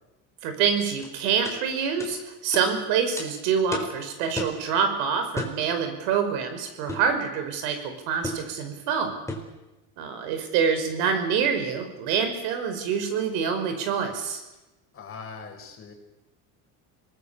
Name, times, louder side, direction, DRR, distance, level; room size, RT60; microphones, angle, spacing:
voice 1, 0.4-9.2 10.0-14.4, right 6 dB, 85° right, 7 dB, 5.4 m, -26 dB
sound 1, 1.0-1.1 1.4-1.6 2.0-2.1 2.5-2.7 3.2-3.3 3.7-4.0 4.4-4.6 5.4-5.6 6.9-7.1 8.2-8.5 9.3-9.5, left 1 dB, 5° left, 4.5 m, -33 dB
voice 2, 14.9-15.9, left 5 dB, 35° left, 2 dB, 6.4 m, -41 dB
26.5 x 20.0 x 7.1 m, 1.0 s
cardioid pair, 125°, 37 cm